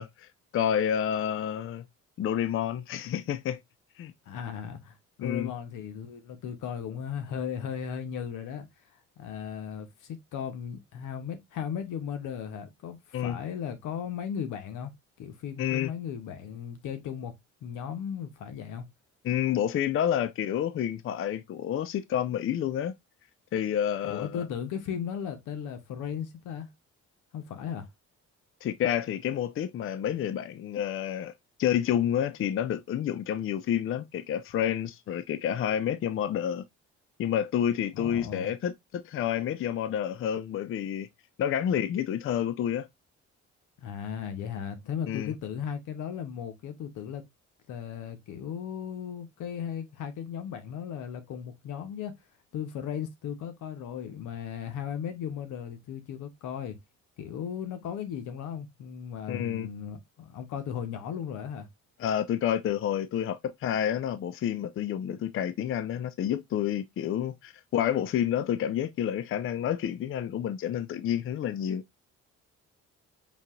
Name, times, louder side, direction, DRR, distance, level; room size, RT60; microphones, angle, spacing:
voice 1, 0.0-1.8 2.2-3.6 4.0-4.1 5.2-5.5 13.1-13.4 15.6-15.9 19.2-22.9 23.5-24.4 28.6-31.3 31.6-36.6 37.2-41.1 41.4-42.9 45.1-45.3 59.3-59.7 62.0-71.8, left 10 dB, 45° left, 0.4 m, -29 dB
voice 2, 4.3-8.7 9.2-14.9 15.2-18.9 24.0-26.7 27.3-27.9 37.9-38.5 43.8-47.2 47.7-52.1 52.5-56.8 57.2-61.7, left 8 dB, 85° left, 0.9 m, -36 dB
5.2 x 2.8 x 2.4 m
cardioid pair, 90°, 30 cm